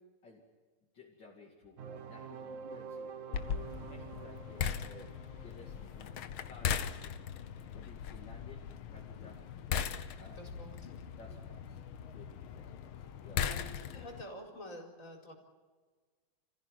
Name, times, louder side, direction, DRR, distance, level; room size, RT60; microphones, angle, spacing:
voice 1, 0.9-5.1 5.4-6.1 6.4-8.6 8.9-9.4 10.2-10.6 11.2-11.8 12.1-13.4, left 3 dB, 55° left, -2 dB, 3.1 m, -56 dB
sound 1, 1.8-7.4, right 6 dB, 60° right, 0.8 m, -48 dB
sound 2, 3.3-14.2, left 8 dB, 75° left, 1.9 m, -39 dB
voice 2, 10.4-10.9 13.5-13.6 13.9-15.3, left 1 dB, 35° left, 1 dB, 4.9 m, -48 dB
29.0 x 15.5 x 9.4 m, 1.4 s
omnidirectional pair, 2.4 m